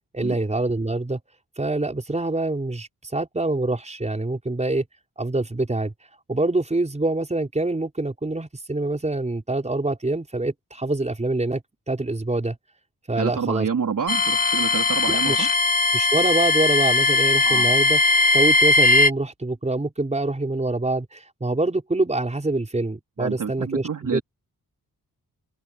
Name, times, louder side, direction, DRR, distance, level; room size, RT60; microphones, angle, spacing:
voice 1, 0.1-1.2 1.6-4.8 5.2-5.9 6.3-11.6 11.9-12.6 13.1-13.7 15.1-15.5 15.9-18.0 18.3-24.2, right 2 dB, 20° right, 5.3 m, -25 dB
voice 2, 13.1-15.5 17.4-17.7 23.2-24.2, right 6 dB, 60° right, 3.6 m, -28 dB
sound 1, 14.1-19.1, left 2 dB, 25° left, 1.3 m, -19 dB
wide cardioid pair, 160°, 36 cm